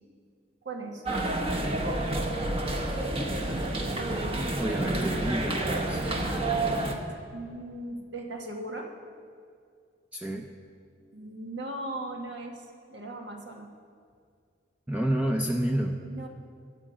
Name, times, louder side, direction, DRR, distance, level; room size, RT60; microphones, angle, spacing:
voice 1, 0.6-1.0 7.3-8.9 11.1-13.7 16.0-16.3, right 1 dB, 70° right, 1 dB, 1.6 m, -38 dB
sound 1, 1.1-7.0, right 2 dB, 30° right, 1.1 m, -29 dB
voice 2, 4.6-6.1 10.1-10.5 14.9-16.0, right 1 dB, 10° right, 2 dB, 0.6 m, -29 dB
16.0 x 9.9 x 5.2 m, 2.2 s
head